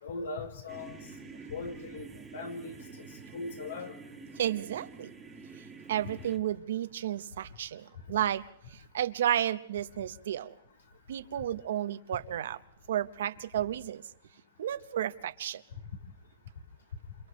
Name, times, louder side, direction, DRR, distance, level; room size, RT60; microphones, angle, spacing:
voice 1, 0.0-1.0 1.5-2.8 3.3-3.9, left 3 dB, 90° left, 4 dB, 4.1 m, -39 dB
sound 1, 0.7-6.4, right 4 dB, 10° right, 1.8 m, -48 dB
voice 2, 4.3-5.1 5.9-8.4 8.7-10.5 11.1-12.6 12.9-14.0 14.6-15.6, right 11 dB, 75° right, 12 dB, 1.0 m, -32 dB
28.5 x 28.5 x 3.2 m, 0.71 s
supercardioid pair, 165°, 0 cm